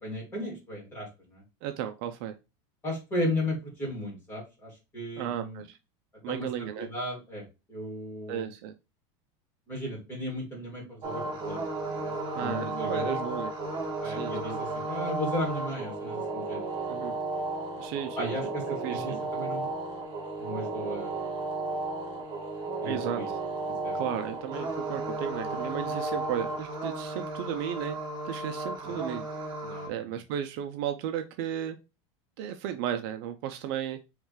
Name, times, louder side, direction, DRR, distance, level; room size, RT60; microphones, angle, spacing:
voice 1, 0.0-1.4 2.8-5.6 6.3-7.4 7.7-8.5 9.7-11.7 11.9-13.2 14.0-17.0 18.2-18.6 18.9-19.7 20.4-21.1 22.8-23.3 23.8-24.0 28.8-29.0 29.6-30.0, left 1 dB, 15° left, -3 dB, 2.5 m, -35 dB
voice 2, 1.6-2.3 5.2-5.8 6.2-6.9 8.3-8.7 12.3-13.5 14.0-14.6 16.9-17.1 17.8-18.3 18.7-19.2 22.8-23.2 23.9-28.0 28.2-29.2 29.9-31.8 32.4-34.0, right 10 dB, 50° right, 8 dB, 0.5 m, -34 dB
sound 1, 11.0-29.9, right 2 dB, 25° right, 1.4 m, -34 dB
5.0 x 3.2 x 3.2 m, 0.27 s
supercardioid pair, 165°, 16 cm